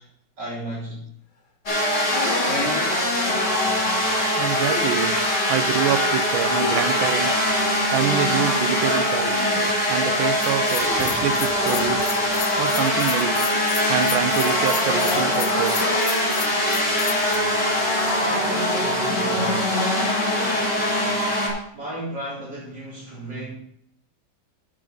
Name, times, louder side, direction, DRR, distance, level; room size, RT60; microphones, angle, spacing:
voice 1, 0.4-1.0 18.2-19.7 21.7-23.5, right 1 dB, 60° right, -7 dB, 4.2 m, -34 dB
sound 1, 1.7-21.5, left 1 dB, 35° left, 3.2 m, -22 dB
sound 2, 2.2-2.7 4.6-5.2 6.6-7.4 8.9-9.9 10.7-11.9 13.3-13.8 14.6-14.9 16.1-16.7 17.9-18.2, left 3 dB, 80° left, 2.1 m, -36 dB
voice 2, 4.4-5.2 5.5-7.4 7.9-9.5 9.9-12.1 12.6-13.4 13.9-15.8, right 10 dB, 90° right, 12 dB, 1.5 m, -26 dB
Bell, 10.4-17.4, left 10 dB, 65° left, 1.1 m, -33 dB
8.9 x 7.7 x 5.2 m, 0.68 s
omnidirectional pair, 2.1 m